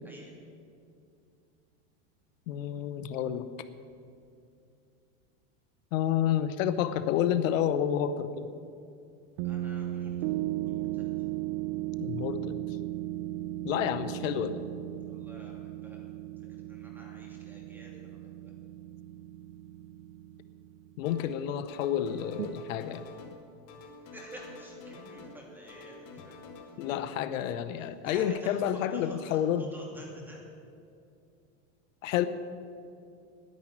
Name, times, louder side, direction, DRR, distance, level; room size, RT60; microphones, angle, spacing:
voice 1, 0.0-0.4 9.4-10.1 10.7-11.1 15.1-16.1 16.7-18.2 24.1-26.3 28.0-30.4, right 1 dB, 5° right, -2 dB, 2.7 m, -49 dB
voice 2, 2.5-3.5 5.9-8.5 12.0-12.6 13.6-14.6 21.0-23.0 26.8-29.7 32.0-32.3, left 10 dB, 85° left, 12 dB, 0.9 m, -29 dB
sound 1, 7.2-8.2 9.4-21.1 22.4-22.5, right 15 dB, 55° right, 0.5 m, -37 dB
sound 2, 21.0-21.4 21.7-23.4 23.7-25.4 25.7-26.9, left 4 dB, 55° left, 2.4 m, -49 dB
10.5 x 10.5 x 8.7 m, 2.5 s
supercardioid pair, 150°, 38 cm